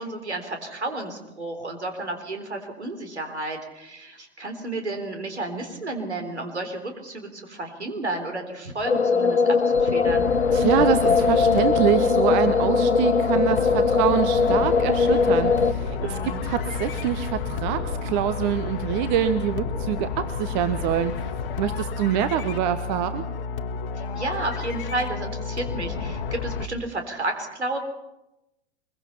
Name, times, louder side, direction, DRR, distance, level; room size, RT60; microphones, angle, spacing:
voice 1, 0.0-10.3 16.0-16.4 24.0-27.8, right 2 dB, 80° right, 4 dB, 3.8 m, -32 dB
sound 1, 8.8-15.7, left 5 dB, 80° left, 1.1 m, -20 dB
sound 2, 10.1-26.7, left 5 dB, 55° left, 1.2 m, -31 dB
voice 2, 10.5-21.2 21.6-23.2, right 10 dB, 40° right, 11 dB, 1.2 m, -25 dB
24.0 x 22.5 x 5.8 m, 0.94 s
figure-of-eight pair, 95°, 33 cm